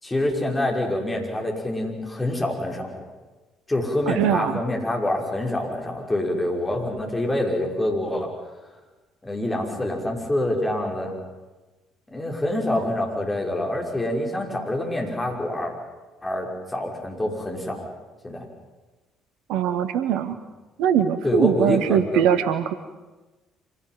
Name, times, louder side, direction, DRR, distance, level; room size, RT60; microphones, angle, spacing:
voice 1, 0.0-3.0 3.7-8.3 9.2-11.1 12.1-15.7 16.2-17.9 18.2-18.5 21.2-22.2, left 1 dB, 15° left, 1 dB, 5.9 m, -26 dB
voice 2, 4.1-4.6 19.5-20.4 20.8-22.7, right 9 dB, 60° right, 11 dB, 0.9 m, -21 dB
25.5 x 17.5 x 9.4 m, 1.2 s
figure-of-eight pair, 50°, 0 cm